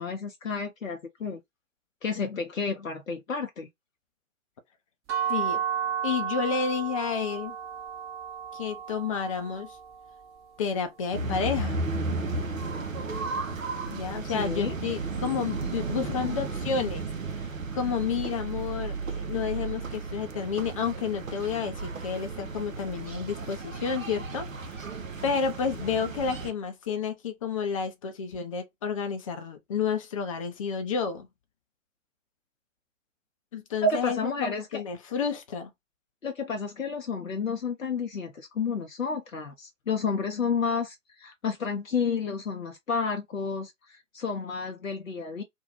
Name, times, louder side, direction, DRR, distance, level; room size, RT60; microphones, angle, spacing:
voice 1, 0.0-1.4 2.0-3.7 14.3-14.7 33.8-34.8 35.2-35.3 36.2-45.4, left 4 dB, 85° left, 0.6 m, -31 dB
sound 1, 5.1-10.9, right 8 dB, 20° right, 0.6 m, -33 dB
voice 2, 5.3-5.6 6.0-7.6 8.5-9.8 10.6-11.8 13.9-17.1 17.7-24.9 25.2-31.3 33.5-35.7, left 6 dB, 30° left, 0.4 m, -30 dB
sound 2, 11.1-26.5, right 3 dB, 85° right, 0.6 m, -34 dB
2.6 x 2.1 x 2.8 m
figure-of-eight pair, 115°, 39 cm